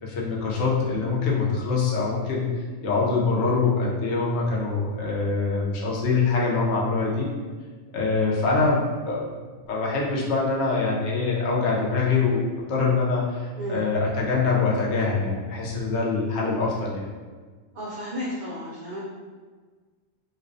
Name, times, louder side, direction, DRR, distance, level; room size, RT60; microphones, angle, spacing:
voice 1, 0.0-2.5 2.8-7.3 7.9-9.2 9.7-12.4 12.7-17.1, left 4 dB, 65° left, -4 dB, 0.8 m, -24 dB
voice 2, 17.7-19.0, equal, 60° right, -7 dB, 0.5 m, -33 dB
2.4 x 2.1 x 2.5 m, 1.5 s
omnidirectional pair, 1.3 m